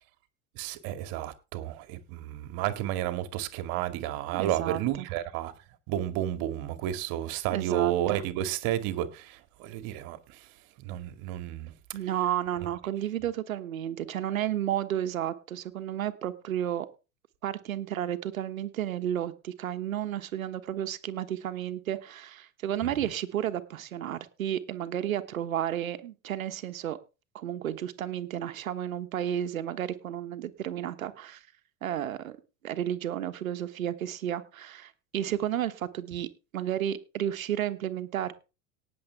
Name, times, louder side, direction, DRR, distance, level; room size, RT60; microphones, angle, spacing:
voice 1, 0.5-5.5 5.9-11.7 22.8-23.1, right 12 dB, 55° right, 2.1 m, -32 dB
voice 2, 4.3-4.8 7.5-8.2 11.9-16.9 17.4-27.0 27.3-31.4 31.8-32.4 32.6-36.3 36.5-38.3, right 11 dB, 85° right, 1.3 m, -32 dB
18.5 x 7.4 x 3.5 m
hypercardioid pair, 85°, 40 cm